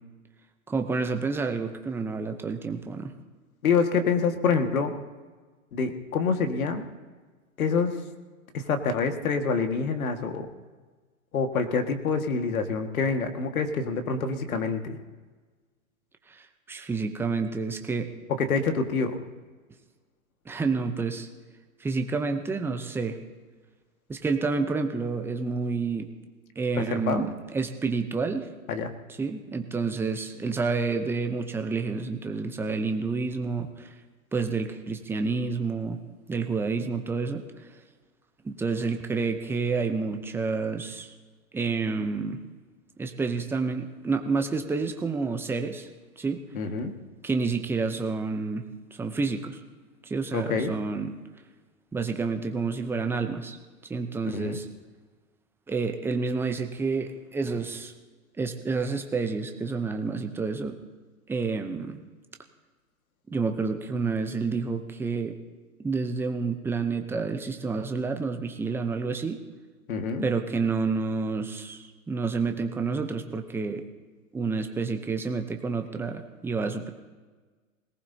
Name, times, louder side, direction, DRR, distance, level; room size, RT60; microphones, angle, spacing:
voice 1, 0.7-3.1 16.3-18.1 20.5-21.3 21.8-23.2 24.1-26.1 26.6-28.5 29.2-33.9 34.3-36.0 36.3-37.4 38.4-41.1 41.5-42.4 43.0-45.9 46.2-46.4 47.2-48.6 49.0-49.6 50.0-51.1 51.9-53.6 53.9-54.7 55.7-57.9 58.4-60.8 61.3-62.0 63.3-65.3 65.8-69.4 70.2-73.8 74.3-76.9, right 4 dB, 5° right, 6 dB, 0.7 m, -29 dB
voice 2, 3.6-4.9 5.7-6.8 7.6-8.0 8.5-10.5 11.3-15.0 18.4-19.2 26.8-27.3 28.7-28.9 46.5-46.9 50.3-50.7 54.3-54.6 69.9-70.3, left 5 dB, 75° left, 7 dB, 1.9 m, -26 dB
21.0 x 18.5 x 2.8 m, 1.4 s
hypercardioid pair, 130°, 42 cm